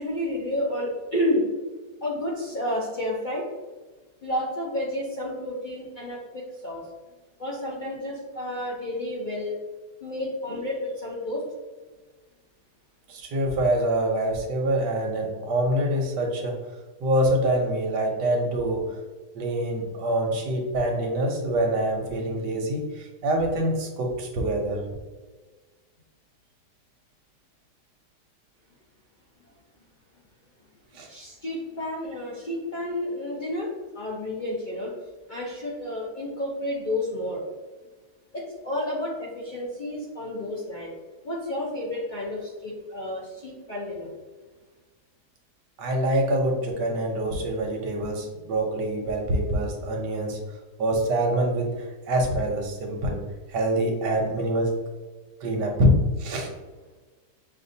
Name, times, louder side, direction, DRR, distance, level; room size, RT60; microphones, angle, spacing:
voice 1, 0.0-1.4 2.0-3.4 4.2-6.8 7.4-9.6 10.0-11.4 31.1-33.7 33.9-34.9 35.3-37.4 38.3-40.9 41.2-44.1, left 1 dB, 50° left, -6 dB, 0.6 m, -30 dB
voice 2, 13.1-16.5 17.0-18.8 19.3-24.8 30.9-31.1 45.8-50.4 50.8-53.2 53.5-54.7 55.4-56.5, right 1 dB, 85° right, 1 dB, 1.5 m, -25 dB
6.6 x 2.4 x 2.7 m, 1.3 s
omnidirectional pair, 1.8 m